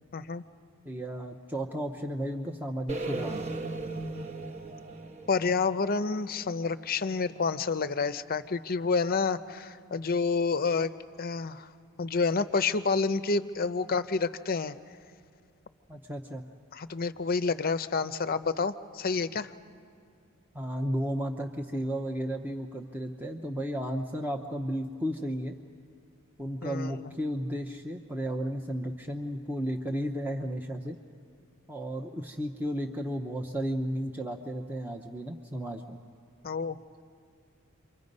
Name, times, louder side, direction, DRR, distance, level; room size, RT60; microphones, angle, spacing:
voice 1, 0.1-0.4 5.3-10.9 11.2-11.7 12.0-14.8 16.7-19.5 26.6-27.1 36.4-36.8, left 4 dB, 45° left, 13 dB, 0.6 m, -29 dB
voice 2, 0.8-3.4 15.9-16.4 20.5-25.6 26.4-31.0 31.7-36.0, equal, 10° right, 2 dB, 0.7 m, -33 dB
sound 1, 2.9-6.9, right 3 dB, 30° right, 1.1 m, -37 dB
29.0 x 24.5 x 5.4 m, 2.3 s
head